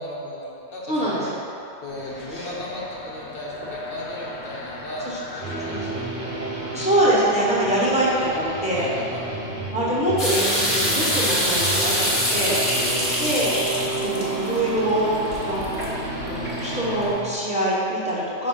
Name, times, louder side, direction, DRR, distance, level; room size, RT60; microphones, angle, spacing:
voice 1, 0.0-1.3 1.8-5.7 6.0-6.5 8.7-9.3 12.7-13.4, left 1 dB, 60° left, -5 dB, 1.1 m, -35 dB
voice 2, 0.9-1.3 2.3-2.5 5.0-5.2 5.7-6.0 6.7-8.9 9.7-12.6 13.2-13.5 14.0-15.9 16.2-18.5, right 1 dB, 5° right, -8 dB, 1.0 m, -24 dB
sound 1, 1.9-17.1, left 2 dB, 90° left, 1.2 m, -37 dB
sound 2, 5.4-17.3, right 3 dB, 55° right, 1.1 m, -32 dB
sound 3, 10.2-17.0, equal, 30° left, 1.4 m, -25 dB
5.5 x 3.8 x 5.5 m, 2.7 s
omnidirectional pair, 1.1 m